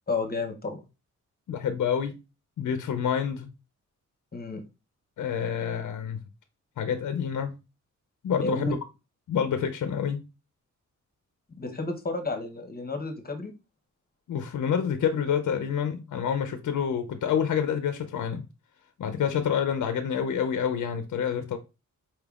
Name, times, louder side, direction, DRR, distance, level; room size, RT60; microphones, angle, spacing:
voice 1, 0.1-0.8 4.3-4.6 8.4-8.7 11.6-13.5, left 3 dB, 30° left, 0.7 m, -31 dB
voice 2, 1.5-2.2 2.6-3.5 5.2-6.2 6.8-7.6 8.2-8.8 9.3-10.2 14.3-18.5 19.0-21.6, left 7 dB, 65° left, 0.5 m, -28 dB
4.4 x 3.4 x 2.3 m
wide cardioid pair, 165°, 32 cm